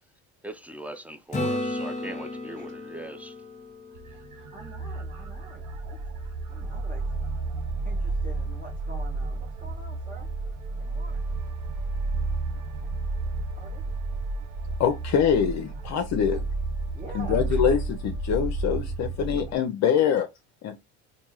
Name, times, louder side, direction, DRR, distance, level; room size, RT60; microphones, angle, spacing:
voice 1, 0.4-3.4, right 1 dB, 5° right, 0.4 m, -40 dB
Acoustic guitar / Strum, 1.3-5.1 9.9-10.0, left 1 dB, 20° left, 0.9 m, -34 dB
sound 1, 3.9-19.5, right 3 dB, 55° right, 0.7 m, -31 dB
voice 2, 4.5-6.0 6.5-7.0 7.8-10.3 10.8-11.2 13.5-13.8 16.3-16.4 16.9-17.6, right 3 dB, 20° right, 0.8 m, -46 dB
voice 3, 14.8-16.4 17.1-20.3 20.6-20.8, left 8 dB, 50° left, 0.6 m, -24 dB
3.5 x 2.6 x 3.0 m
supercardioid pair, 90°, 36 cm